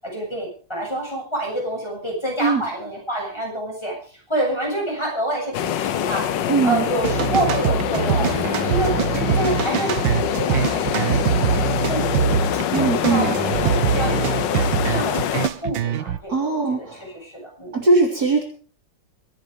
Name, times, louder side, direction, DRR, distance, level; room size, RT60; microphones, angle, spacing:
voice 1, 0.0-8.3 8.6-9.0 9.3-12.4 12.7-17.8, right 1 dB, 15° left, -1 dB, 7.5 m, -28 dB
sound 1, 5.5-15.5, left 10 dB, 75° left, 1.6 m, -24 dB
voice 2, 6.5-6.8 12.7-13.4 16.3-17.0 17.7-18.4, right 3 dB, 55° right, 2 dB, 4.0 m, -20 dB
sound 2, 7.0-16.2, right 8 dB, 90° right, 1.7 m, -23 dB
24.0 x 10.5 x 5.2 m, 0.43 s
omnidirectional pair, 2.0 m